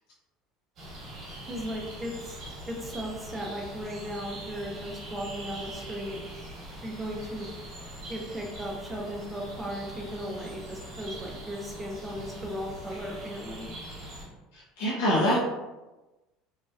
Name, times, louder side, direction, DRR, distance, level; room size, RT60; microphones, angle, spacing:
sound 1, 0.8-14.2, right 1 dB, 35° right, 1.1 m, -42 dB
voice 1, 1.5-2.4 2.7-6.2 6.8-7.5 8.1-13.7, equal, 5° right, -2 dB, 0.5 m, -36 dB
voice 2, 14.5-15.4, equal, 85° left, -6 dB, 0.7 m, -25 dB
3.1 x 2.7 x 2.3 m, 1.1 s
cardioid pair, 175°, 0 cm